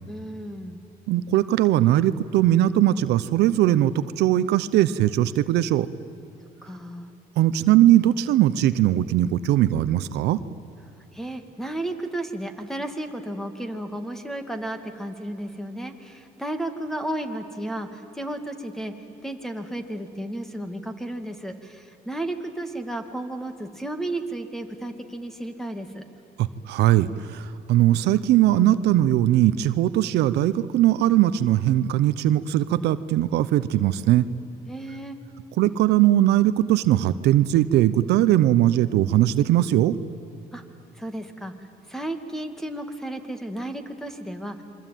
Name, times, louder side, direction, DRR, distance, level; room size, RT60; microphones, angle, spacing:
voice 1, 0.1-0.8 6.6-7.1 11.1-18.9 19.2-26.1 34.7-35.2 40.5-40.6 41.0-44.6, right 1 dB, ahead, 7 dB, 2.3 m, -33 dB
voice 2, 1.1-5.9 7.4-10.4 26.4-34.2 35.6-40.0, right 13 dB, 80° right, 13 dB, 0.8 m, -20 dB
27.5 x 23.0 x 9.2 m, 2.9 s
cardioid pair, 110°, 17 cm